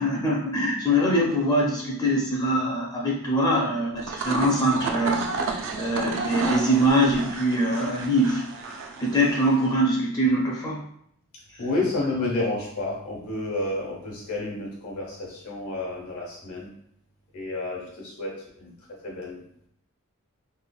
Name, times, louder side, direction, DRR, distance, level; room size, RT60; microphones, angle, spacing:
voice 1, 0.0-8.7 9.0-10.8, equal, 20° left, -3 dB, 0.4 m, -23 dB
sound 1, 3.9-9.7, right 4 dB, 60° right, 0.4 m, -31 dB
voice 2, 11.6-16.7 17.3-18.3 18.6-18.7 19.0-19.4, left 2 dB, 85° left, -3 dB, 1.0 m, -30 dB
3.2 x 2.1 x 2.3 m, 0.71 s
head